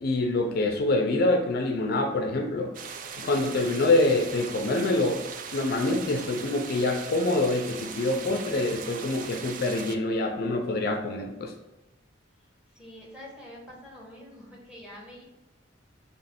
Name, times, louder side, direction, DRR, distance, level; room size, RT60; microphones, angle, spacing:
voice 1, 0.0-2.7 3.2-5.2 5.5-11.5, left 2 dB, 50° left, 4 dB, 0.4 m, -25 dB
sound 1, 2.7-10.0, right 6 dB, 45° right, 0.3 m, -40 dB
voice 2, 12.7-15.2, left 1 dB, 5° right, -3 dB, 0.9 m, -46 dB
3.1 x 3.0 x 4.2 m, 0.96 s
head